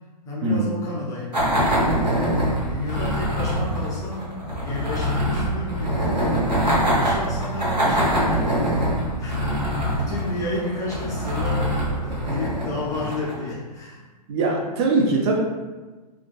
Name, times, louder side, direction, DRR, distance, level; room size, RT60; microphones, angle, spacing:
voice 1, 0.2-1.9 2.4-6.2 6.8-14.1, left 1 dB, 15° left, -6 dB, 0.4 m, -32 dB
sound 1, 1.3-13.5, equal, 85° right, 0.9 m, -24 dB
voice 2, 14.3-15.4, right 3 dB, 40° right, -1 dB, 0.5 m, -21 dB
2.4 x 2.2 x 2.2 m, 1.2 s
figure-of-eight pair, 115°, 21 cm